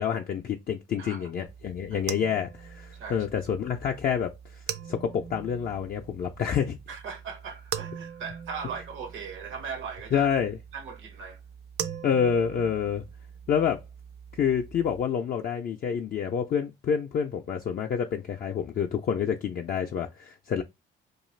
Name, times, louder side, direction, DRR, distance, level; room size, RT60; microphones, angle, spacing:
voice 1, 0.0-4.6 4.9-6.8 10.1-10.6 12.0-13.0 13.5-13.8 14.4-20.6, left 7 dB, 45° left, 0.4 m, -28 dB
voice 2, 1.0-1.3 1.9-2.0 2.9-3.3 6.9-10.3 10.7-11.4, right 6 dB, 80° right, 0.8 m, -38 dB
sound 1, 1.5-15.0, right 8 dB, 55° right, 0.4 m, -42 dB
2.4 x 2.3 x 3.1 m
cardioid pair, 90°, 20 cm